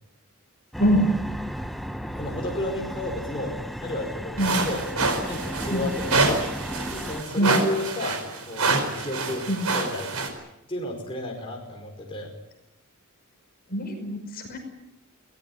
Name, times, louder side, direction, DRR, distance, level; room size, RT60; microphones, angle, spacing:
sound 1, 0.7-7.2, equal, ahead, 0.9 m, -34 dB
voice 1, 2.1-4.8 5.2-6.5 6.9-10.1 10.7-12.3, left 1 dB, 25° left, 0 dB, 5.2 m, -32 dB
sound 2, 4.4-10.3, right 3 dB, 85° right, 4.8 m, -27 dB
voice 2, 13.7-14.6, equal, 45° left, 4 dB, 5.4 m, -24 dB
22.5 x 19.0 x 9.9 m, 0.87 s
head